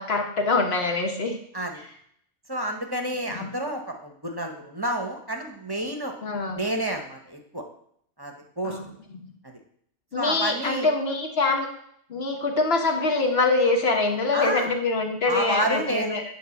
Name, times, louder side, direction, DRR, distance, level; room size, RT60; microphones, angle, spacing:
voice 1, 0.0-1.4 3.3-3.5 6.2-6.6 8.6-8.8 9.2-9.3 10.1-11.7 12.1-16.2, left 3 dB, 55° left, 3 dB, 1.5 m, -24 dB
voice 2, 2.5-6.1 6.5-7.6 8.2-8.8 9.4-9.6 10.1-10.9 14.3-14.7 15.3-16.2, right 1 dB, 20° right, 4 dB, 0.9 m, -29 dB
9.4 x 3.7 x 7.1 m, 0.68 s
omnidirectional pair, 1.3 m